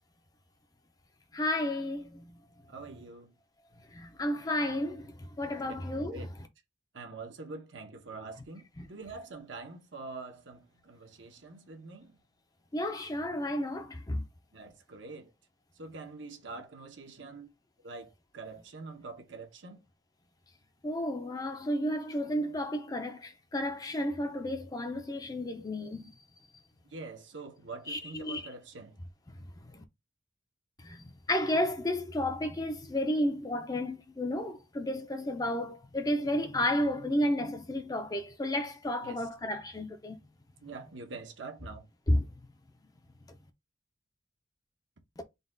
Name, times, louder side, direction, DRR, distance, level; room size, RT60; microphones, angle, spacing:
voice 1, 1.3-2.3 3.9-6.2 8.8-8.9 12.7-14.2 20.8-26.1 27.9-28.4 29.6-29.8 30.8-40.2 42.1-42.3 45.2-45.3, left 1 dB, 20° left, 0.5 m, -32 dB
voice 2, 2.7-3.3 5.6-5.7 6.1-6.3 6.9-12.2 14.5-15.3 15.7-17.5 17.8-19.8 26.8-29.0 39.0-39.3 40.6-41.9, right 3 dB, 70° right, 0.9 m, -45 dB
3.9 x 2.3 x 3.7 m
head